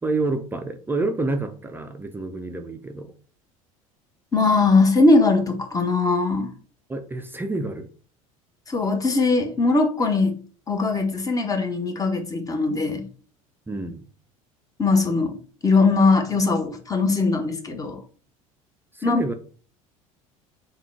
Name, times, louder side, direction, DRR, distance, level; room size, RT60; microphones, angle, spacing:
voice 1, 0.0-3.1 6.9-7.9 13.7-14.1 18.9-19.3, right 2 dB, 10° right, 0.4 m, -28 dB
voice 2, 4.3-6.5 8.7-10.4 10.7-13.1 14.8-15.4 15.6-18.0 19.0-19.2, left 3 dB, 20° left, 0.9 m, -20 dB
3.6 x 2.3 x 4.5 m
figure-of-eight pair, 70°, 18 cm